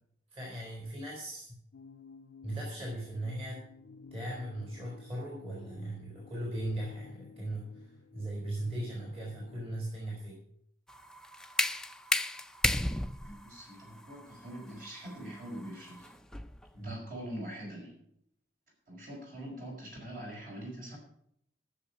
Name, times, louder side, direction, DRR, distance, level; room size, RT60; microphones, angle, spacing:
voice 1, 0.3-1.5 2.4-3.7 4.1-10.4 16.8-17.0, right 1 dB, 30° right, -3 dB, 4.5 m, -38 dB
sound 1, 1.7-9.9, left 4 dB, 60° left, 0.5 m, -54 dB
sound 2, 10.9-16.7, left 1 dB, 5° left, 0.4 m, -34 dB
voice 2, 13.2-16.1 16.7-17.9 18.9-21.0, equal, 50° right, -1 dB, 5.4 m, -43 dB
14.5 x 7.1 x 6.0 m, 0.71 s
head